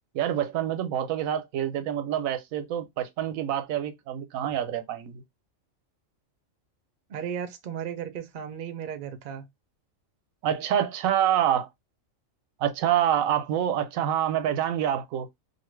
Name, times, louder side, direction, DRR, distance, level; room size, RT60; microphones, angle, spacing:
voice 1, 0.1-5.2 10.4-11.7 12.6-15.4, right 10 dB, 90° right, 1.0 m, -27 dB
voice 2, 7.1-9.4, right 8 dB, 55° right, 0.6 m, -35 dB
2.7 x 2.5 x 3.0 m
omnidirectional pair, 1.4 m